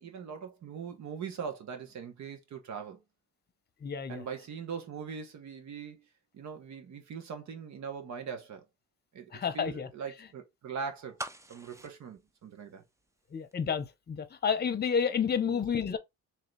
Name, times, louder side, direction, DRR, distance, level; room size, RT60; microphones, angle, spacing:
voice 1, 0.0-3.0 4.1-6.0 6.3-8.6 9.1-11.2 11.5-12.8 15.5-15.6, right 6 dB, 65° right, 1.3 m, -41 dB
voice 2, 3.8-4.2 9.3-9.9 13.3-16.0, left 6 dB, 35° left, 0.8 m, -30 dB
sound 1, 11.2-13.2 13.5-13.6, right 1 dB, 10° right, 0.5 m, -43 dB
3.6 x 3.0 x 3.3 m
cardioid pair, 90°, 30 cm